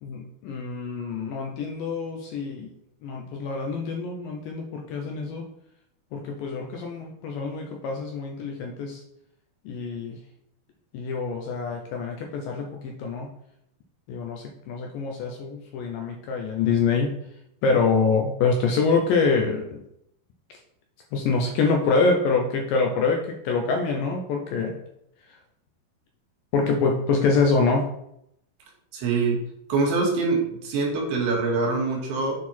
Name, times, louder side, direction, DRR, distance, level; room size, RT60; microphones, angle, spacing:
voice 1, 0.0-2.7 3.0-5.5 6.1-9.0 9.7-10.2 10.9-13.3 14.1-17.1 17.6-19.8 21.1-24.7 26.5-27.9, left 4 dB, 75° left, 1 dB, 2.2 m, -25 dB
voice 2, 28.9-29.4 29.7-32.4, right 3 dB, 75° right, -1 dB, 3.4 m, -24 dB
8.1 x 4.4 x 4.3 m, 0.76 s
omnidirectional pair, 4.7 m